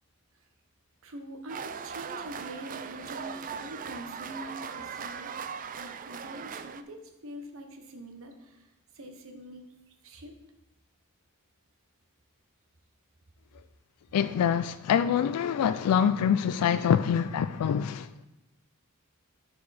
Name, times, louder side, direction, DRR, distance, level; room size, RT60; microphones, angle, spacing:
voice 1, 1.0-5.3 5.7-8.7 8.9-9.6 10.0-10.3, right 1 dB, 65° right, 1.1 m, -44 dB
sound 1, 1.5-6.8, right 7 dB, 40° right, 0.4 m, -39 dB
voice 2, 14.1-18.1, left 8 dB, 85° left, 0.3 m, -25 dB
12.0 x 4.7 x 4.2 m
head